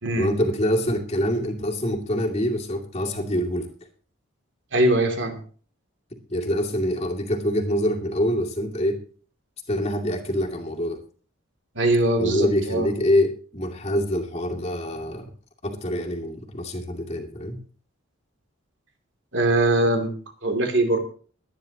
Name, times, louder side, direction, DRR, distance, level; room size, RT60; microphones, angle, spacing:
voice 1, 0.2-3.7 6.1-9.0 9.7-11.0 12.2-15.3 15.6-17.6, equal, 30° left, 0 dB, 2.4 m, -25 dB
voice 2, 4.7-5.4 11.7-12.9 19.3-20.1 20.4-21.0, right 2 dB, 65° right, 5 dB, 2.7 m, -21 dB
23.0 x 10.0 x 2.9 m, 0.41 s
head